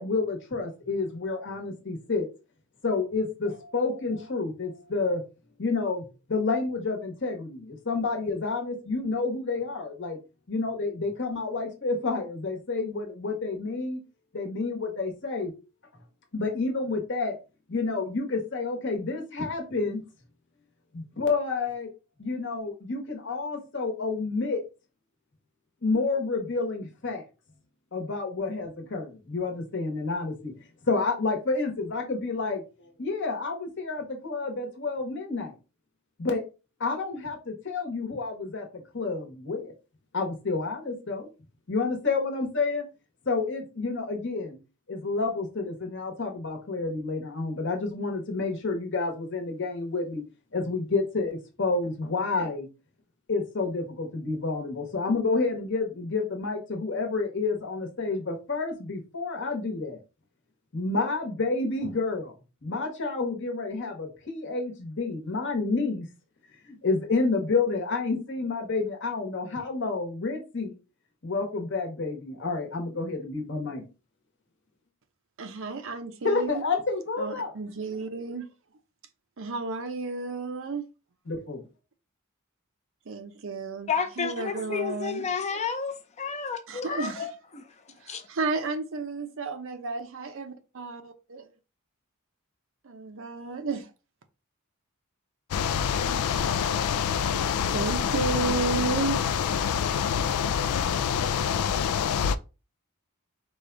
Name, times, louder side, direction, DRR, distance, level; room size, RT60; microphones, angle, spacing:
voice 1, 0.0-2.3 2.8-5.2 5.6-10.2 10.5-14.0 14.3-15.5 16.3-17.3 17.7-20.0 20.9-21.9 22.2-24.6 25.8-27.2 27.9-30.5 30.8-35.5 36.2-36.4 36.8-39.7 40.1-41.3 41.7-42.8 43.2-44.6 44.9-50.2 50.5-52.7 53.3-60.0 60.7-62.3 62.6-66.1 66.6-70.7 71.2-73.8 76.2-77.5 81.3-81.6, left 3 dB, 55° left, 1.2 m, -29 dB
voice 2, 75.4-76.6 77.2-78.5 79.4-80.9 83.1-83.9 84.2-85.2 86.7-87.3 88.0-91.4 92.8-93.9 97.7-99.5, right 4 dB, 60° right, 0.6 m, -32 dB
voice 3, 83.9-87.7 88.1-88.2, left 6 dB, 30° left, 0.6 m, -31 dB
sound 1, 95.5-102.4, left 7 dB, 85° left, 0.3 m, -26 dB
4.9 x 2.3 x 3.8 m
head